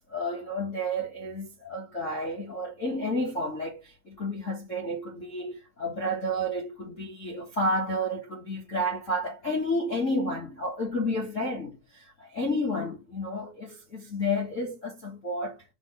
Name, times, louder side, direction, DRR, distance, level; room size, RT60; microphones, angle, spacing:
voice 1, 0.1-15.6, left 1 dB, 30° left, 1.8 m, -31 dB
5.2 x 5.2 x 6.5 m
omnidirectional pair, 3.4 m